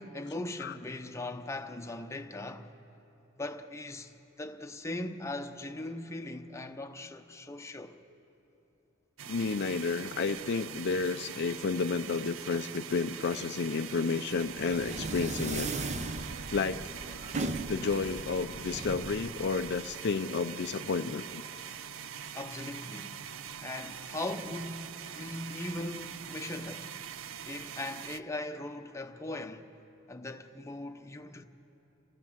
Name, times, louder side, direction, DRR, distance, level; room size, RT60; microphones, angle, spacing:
voice 1, 0.0-2.7 3.4-8.0 22.3-23.1 23.6-27.0 27.5-29.7 30.1-31.4, left 2 dB, 15° left, 0.8 m, -39 dB
sound 1, 9.2-28.2, right 8 dB, 70° right, 0.5 m, -43 dB
voice 2, 9.3-15.7 16.5-16.8 17.7-21.4, left 4 dB, 55° left, 0.4 m, -31 dB
sound 2, 14.4-20.2, right 2 dB, 35° right, 0.8 m, -38 dB
27.5 x 16.5 x 7.3 m
head